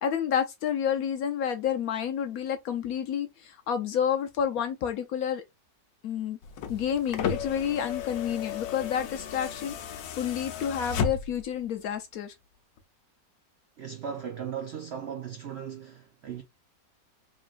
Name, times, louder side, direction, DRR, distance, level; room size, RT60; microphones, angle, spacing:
voice 1, 0.0-5.4 6.0-6.4 6.7-12.3, left 8 dB, 70° left, 0.9 m, -30 dB
sound 1, 6.4-11.6 12.8-12.9, left 6 dB, 85° left, 1.3 m, -34 dB
voice 2, 13.8-16.4, right 8 dB, 85° right, 0.5 m, -37 dB
3.8 x 3.1 x 2.5 m
omnidirectional pair, 1.9 m